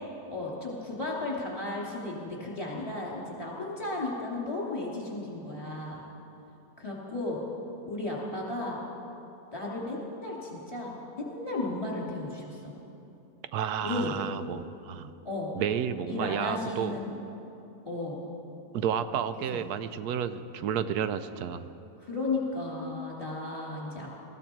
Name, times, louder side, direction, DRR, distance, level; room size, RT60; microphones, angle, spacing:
voice 1, 0.3-6.0 6.8-7.4 7.9-8.8 9.5-12.6 13.8-14.2 15.2-15.5 16.0-17.1 17.8-18.2 19.5-19.6 22.0-24.2, left 2 dB, 20° left, -4 dB, 3.1 m, -34 dB
voice 2, 13.5-15.1 15.6-16.9 18.7-21.7, right 8 dB, 90° right, 12 dB, 1.2 m, -31 dB
20.0 x 15.0 x 4.6 m, 2.9 s
omnidirectional pair, 1.6 m